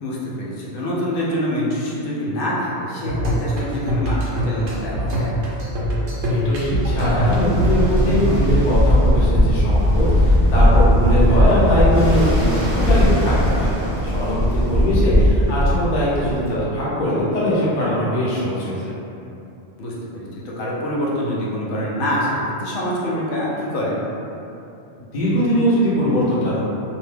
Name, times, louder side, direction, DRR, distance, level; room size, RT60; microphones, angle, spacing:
voice 1, 0.0-5.4 15.0-15.3 19.8-24.0, equal, 80° left, -6 dB, 0.9 m, -25 dB
sound 1, 3.0-8.6, equal, 80° right, 0.9 m, -23 dB
voice 2, 6.2-13.7 14.0-18.9 25.0-26.6, equal, 45° left, -8 dB, 0.7 m, -21 dB
Ocean, 6.7-16.5, equal, 35° right, 0.5 m, -18 dB
2.6 x 2.1 x 3.3 m, 2.7 s
omnidirectional pair, 1.2 m